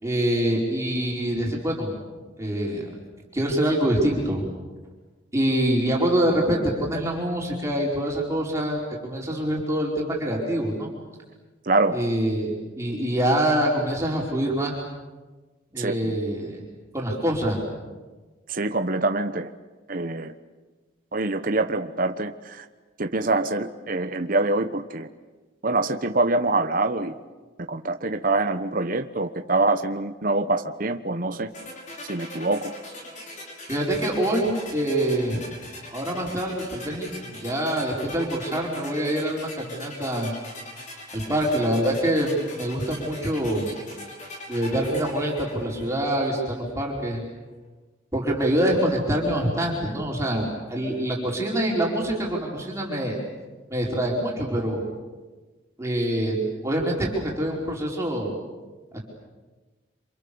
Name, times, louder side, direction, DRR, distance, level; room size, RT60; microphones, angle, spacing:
voice 1, 0.0-1.9 2.4-2.8 3.3-4.4 5.3-10.9 11.9-14.8 15.7-16.6 16.9-17.6 33.7-35.4 35.9-40.3 41.1-43.7 44.5-47.2 48.1-53.2 53.7-54.8 55.8-58.3 58.9-59.0, right 1 dB, 15° right, -3 dB, 5.0 m, -25 dB
voice 2, 11.6-12.0 15.8-16.2 18.5-19.5 19.9-20.3 21.1-22.7 23.0-25.1 25.6-27.1 27.7-31.5 32.0-32.7, right 2 dB, 45° right, 7 dB, 1.1 m, -25 dB
sound 1, 31.5-46.5, left 1 dB, 40° left, 5.6 m, -41 dB
28.5 x 27.0 x 7.1 m, 1.3 s
head